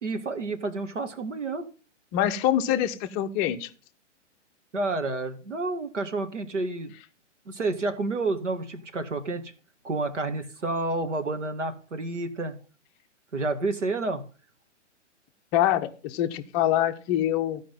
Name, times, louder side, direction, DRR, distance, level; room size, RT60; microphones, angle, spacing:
voice 1, 0.0-1.7 4.7-6.9 7.5-9.5 9.8-12.5 13.3-14.2, right 3 dB, 80° right, 8 dB, 1.8 m, -29 dB
voice 2, 2.1-3.7 15.5-17.6, left 11 dB, 20° left, 8 dB, 0.6 m, -25 dB
14.0 x 5.1 x 5.4 m, 0.37 s
figure-of-eight pair, 125°, 36 cm